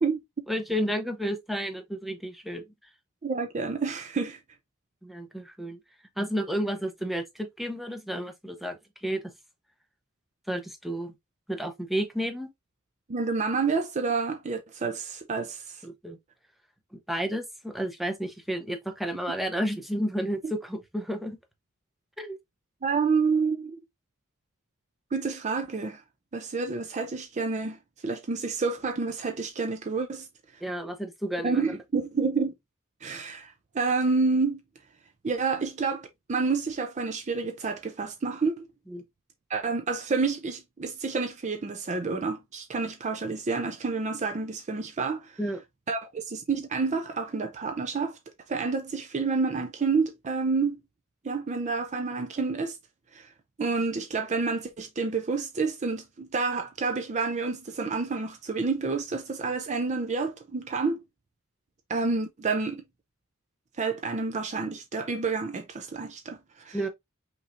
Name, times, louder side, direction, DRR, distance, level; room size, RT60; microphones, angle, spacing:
voice 1, 0.5-2.7 5.0-5.8 6.2-9.2 10.5-11.1 11.5-12.5 15.8-16.2 17.1-21.4 22.2-22.4 30.6-31.6 38.9-39.0 45.4-45.6 66.7-66.9, equal, ahead, 0.8 m, -31 dB
voice 2, 3.2-4.4 13.1-15.8 22.8-23.8 25.1-26.0 26.3-27.8 28.0-30.3 31.4-32.5 33.0-34.6 35.2-38.7 39.5-45.3 45.9-48.2 48.5-50.8 51.2-52.8 53.1-53.3 53.6-61.0 61.9-62.8 63.8-66.8, right 4 dB, 35° right, 0.5 m, -29 dB
5.5 x 3.0 x 2.5 m
head